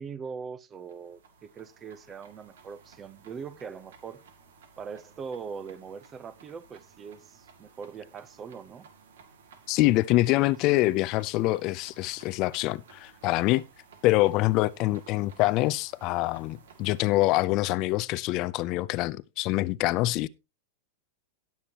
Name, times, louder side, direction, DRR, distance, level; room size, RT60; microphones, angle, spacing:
voice 1, 0.0-4.2 4.8-8.9, right 6 dB, 20° right, 0.7 m, -41 dB
sound 1, 0.7-17.0, right 5 dB, 85° right, 2.4 m, -56 dB
voice 2, 9.7-13.6 14.0-20.3, left 18 dB, 40° left, 0.4 m, -25 dB
17.5 x 7.1 x 2.9 m
supercardioid pair, 150°, 0 cm